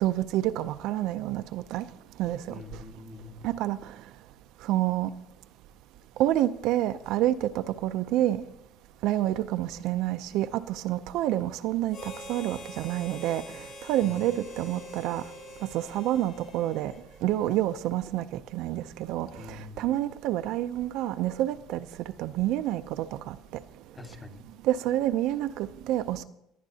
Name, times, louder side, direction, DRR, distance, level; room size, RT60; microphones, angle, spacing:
voice 1, 0.0-1.8 2.2-2.4 3.4-3.8 4.7-5.1 6.2-8.4 9.0-12.0 12.3-13.4 13.9-15.2 15.7-16.9 17.2-18.2 18.5-21.9 22.2-23.4 24.6-26.2, right 13 dB, 70° right, 11 dB, 0.5 m, -28 dB
voice 2, 2.5-3.5 14.0-14.2 19.4-20.0 23.9-24.4, left 3 dB, 20° left, 5 dB, 1.4 m, -44 dB
Harmonica, 11.9-17.4, left 1 dB, 65° left, 3.6 m, -45 dB
19.5 x 10.5 x 2.8 m, 0.81 s
cardioid pair, 115°, 0 cm